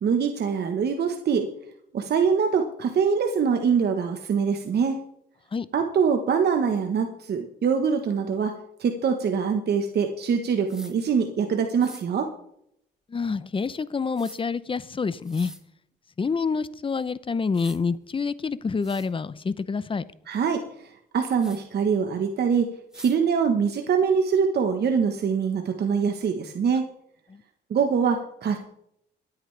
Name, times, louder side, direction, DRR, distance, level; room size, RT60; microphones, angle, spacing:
voice 1, 0.0-1.5 1.9-5.0 5.7-8.5 8.8-12.3 20.3-26.8 27.7-28.6, right 6 dB, 55° right, 1.2 m, -24 dB
sound 1, 10.7-10.9 11.8-12.0 14.2-14.4 15.2-15.6 17.1-17.2 17.5-17.8 18.4-18.5 18.8-19.1 21.4-21.6 22.9-23.2, equal, 5° right, 1.3 m, -45 dB
voice 2, 13.1-15.5 16.2-20.0 27.3-27.4, left 5 dB, 25° left, 0.7 m, -27 dB
23.0 x 8.9 x 3.4 m
cardioid pair, 90°, 20 cm